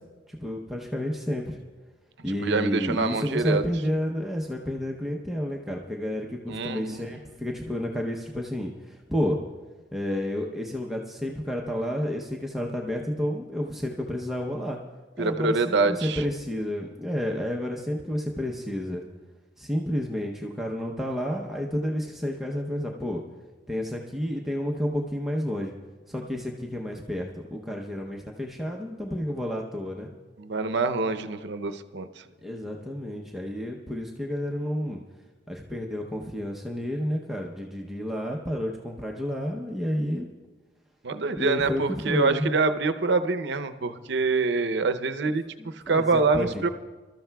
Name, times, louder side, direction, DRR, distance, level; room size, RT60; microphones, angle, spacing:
voice 1, 0.3-1.6 2.2-9.4 9.9-14.8 15.2-19.0 19.6-23.2 23.7-25.7 26.1-30.1 32.4-35.0 35.5-40.3 41.4-42.5 45.6-46.7, equal, ahead, -1 dB, 0.7 m, -30 dB
voice 2, 2.4-3.6 6.5-7.0 15.2-16.2 30.4-32.2 41.0-46.7, right 3 dB, 65° right, 10 dB, 0.7 m, -25 dB
26.0 x 13.0 x 2.3 m, 1.3 s
head